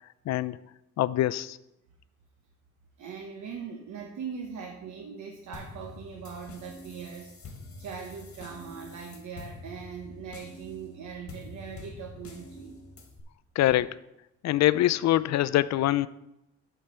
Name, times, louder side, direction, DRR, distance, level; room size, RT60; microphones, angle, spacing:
voice 1, 0.3-0.6 1.0-1.6 13.6-14.0 14.4-16.1, left 14 dB, 65° left, 17 dB, 0.5 m, -24 dB
voice 2, 3.0-7.3 7.8-12.8, right 6 dB, 70° right, 2 dB, 1.1 m, -40 dB
sound 1, 5.5-13.2, left 2 dB, 50° left, 1.8 m, -46 dB
8.5 x 4.5 x 6.8 m, 0.88 s
cardioid pair, 90°, 30 cm